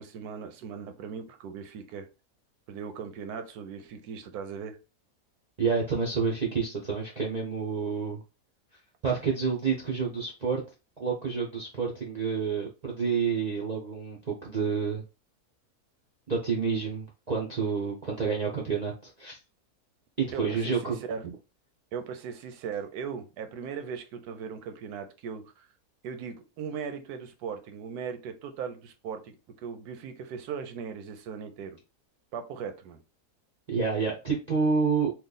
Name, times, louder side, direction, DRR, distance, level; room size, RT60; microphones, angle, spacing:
voice 1, 0.0-2.1 2.7-4.8 20.3-20.8 21.1-21.2 21.9-25.7 26.0-29.4 29.6-31.8 32.3-33.0, right 6 dB, 80° right, 7 dB, 1.1 m, -38 dB
voice 2, 5.6-8.2 9.0-10.6 11.0-15.0 16.3-19.4 20.2-21.0 33.7-35.1, right 5 dB, 50° right, -2 dB, 0.5 m, -29 dB
3.2 x 2.3 x 3.7 m, 0.29 s
omnidirectional pair, 1.6 m